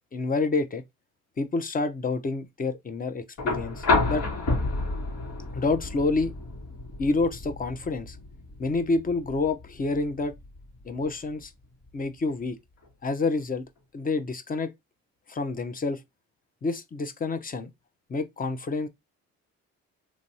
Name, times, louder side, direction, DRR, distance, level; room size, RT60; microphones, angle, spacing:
voice 1, 0.1-0.8 1.4-4.3 5.5-6.3 7.0-8.2 8.6-10.3 10.8-11.5 11.9-12.6 13.0-13.6 13.9-14.7 15.3-16.0 16.6-17.7 18.1-18.9, left 3 dB, 30° left, 0.7 m, -28 dB
sound 1, 3.4-11.4 12.8-12.9, left 3 dB, 75° left, 2.0 m, -30 dB
3.3 x 3.0 x 2.7 m
cardioid pair, 90°, 30 cm